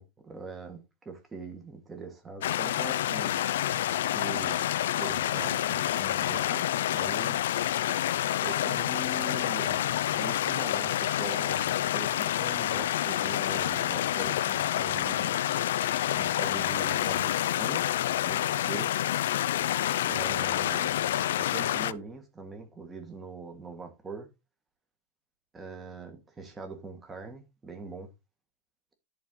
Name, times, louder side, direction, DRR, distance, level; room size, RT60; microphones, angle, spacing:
voice 1, 0.0-3.8 4.1-7.4 8.4-15.4 16.1-17.9 18.2-18.9 20.0-20.9 21.4-24.3 25.5-28.1, right 3 dB, 10° right, 1.6 m, -42 dB
sound 1, 2.4-21.9, left 12 dB, 80° left, 0.5 m, -28 dB
10.5 x 4.2 x 3.8 m
supercardioid pair, 170°, 0 cm